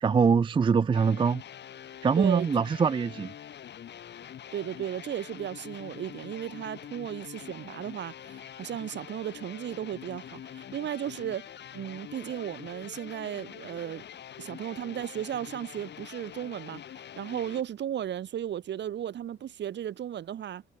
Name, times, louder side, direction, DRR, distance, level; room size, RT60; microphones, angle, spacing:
voice 1, 0.0-1.4 2.0-3.3, right 5 dB, 25° right, 0.4 m, -23 dB
sound 1, 0.9-17.6, left 10 dB, 60° left, 2.3 m, -45 dB
voice 2, 2.2-2.5 4.5-11.5 11.7-14.0 14.4-20.6, right 10 dB, 65° right, 1.8 m, -35 dB
cardioid pair, 90°, 20 cm